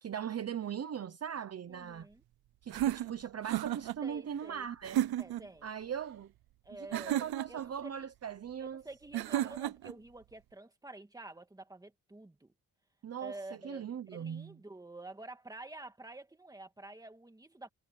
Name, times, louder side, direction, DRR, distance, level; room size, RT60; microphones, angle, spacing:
voice 1, 0.0-2.1 2.6-5.1 5.6-6.3 6.7-8.8 9.3-9.6 13.0-14.6, right 8 dB, 40° right, 0.8 m, -40 dB
voice 2, 1.7-2.2 4.0-4.7 5.2-5.7 6.6-8.1 8.6-12.5 13.2-17.7, right 2 dB, 10° right, 2.0 m, -49 dB
sound 1, 2.7-4.0 4.8-5.5 6.9-7.7 9.1-9.9, right 13 dB, 75° right, 0.6 m, -33 dB
wide cardioid pair, 160°, 38 cm